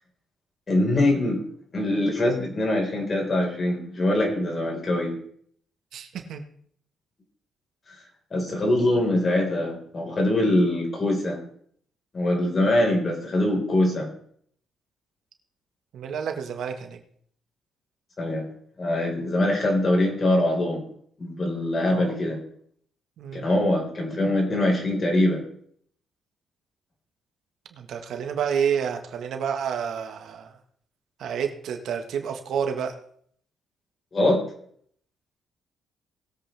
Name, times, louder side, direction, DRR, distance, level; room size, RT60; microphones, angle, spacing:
voice 1, 0.7-1.4 1.7-5.2 8.3-11.4 12.1-14.1 18.2-18.5 18.8-20.8 21.2-22.4 23.3-25.4 34.1-34.4, left 1 dB, 35° left, 0 dB, 4.7 m, -23 dB
voice 2, 5.9-6.4 15.9-17.0 21.9-22.1 23.2-23.5 27.7-30.6 31.2-32.9, right 7 dB, 70° right, 5 dB, 1.6 m, -29 dB
20.0 x 7.9 x 3.5 m, 0.63 s
cardioid pair, 90°, 0 cm